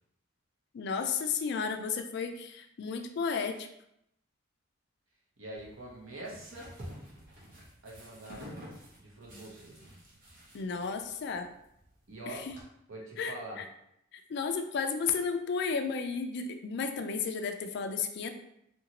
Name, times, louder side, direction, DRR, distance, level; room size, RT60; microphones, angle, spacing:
voice 1, 0.7-3.7 10.5-11.5 12.3-12.4 13.2-13.6 14.1-18.3, left 5 dB, 55° left, 7 dB, 0.3 m, -33 dB
voice 2, 5.4-6.7 7.8-8.6 9.0-9.8 12.1-12.5 12.9-13.6, right 1 dB, 80° right, -2 dB, 0.8 m, -44 dB
sound 1, 5.6-12.6, equal, 45° right, 0.9 m, -50 dB
2.8 x 2.6 x 2.8 m, 0.78 s
head